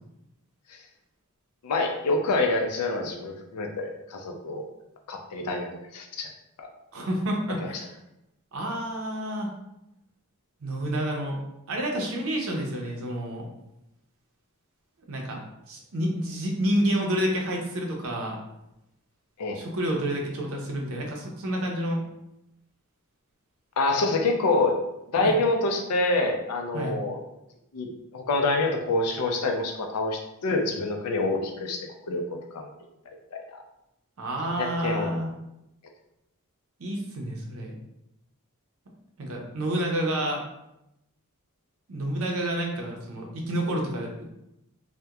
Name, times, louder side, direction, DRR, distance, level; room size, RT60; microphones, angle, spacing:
voice 1, 1.6-4.6 5.1-6.3 6.6-6.7 7.6-7.7 19.4-19.6 23.8-24.8 25.1-27.2 27.7-32.2 32.5-32.7 33.3-33.6 34.5-35.1, left 2 dB, 90° left, 3 dB, 0.4 m, -27 dB
voice 2, 6.9-7.9 8.5-9.5 10.6-11.4 11.7-13.5 15.1-15.4 15.7-18.4 19.5-22.0 25.2-25.3 26.7-27.0 34.2-35.3 36.8-37.8 39.2-40.4 41.9-44.2, right 1 dB, 65° right, 1 dB, 0.5 m, -29 dB
2.8 x 2.1 x 2.3 m, 0.86 s
head